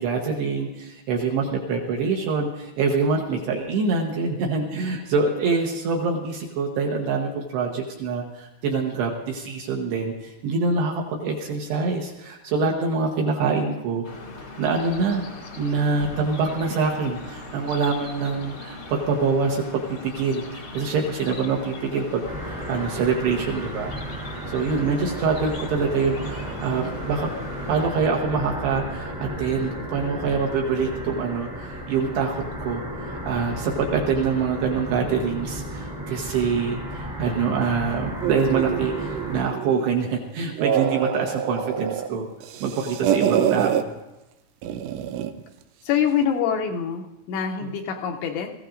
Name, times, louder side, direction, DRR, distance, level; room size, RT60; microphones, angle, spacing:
voice 1, 0.0-14.0 14.6-15.2 15.6-23.9 24.5-27.3 27.7-42.3 42.6-43.9 47.6-47.7, right 4 dB, 70° right, 0 dB, 2.7 m, -25 dB
sound 1, 14.0-27.9, left 2 dB, 50° left, 1.4 m, -39 dB
sound 2, 22.2-39.4, equal, 20° right, 1.0 m, -34 dB
sound 3, 38.2-40.0 40.4-42.1 42.4-43.8 44.6-45.4, right 9 dB, 90° right, 2.4 m, -26 dB
voice 2, 45.8-48.5, left 8 dB, 80° left, 3 dB, 2.9 m, -25 dB
21.5 x 14.5 x 2.5 m, 0.98 s
omnidirectional pair, 5.7 m